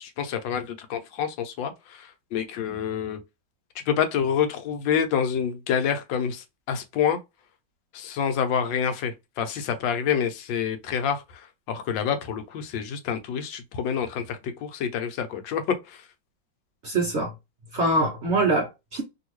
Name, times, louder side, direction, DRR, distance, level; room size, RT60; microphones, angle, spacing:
voice 1, 0.0-3.2 3.9-7.2 7.9-16.1, left 7 dB, 75° left, 1.3 m, -27 dB
voice 2, 16.8-17.3 17.7-19.0, right 2 dB, 50° right, 0.9 m, -24 dB
3.0 x 2.7 x 3.0 m
omnidirectional pair, 2.1 m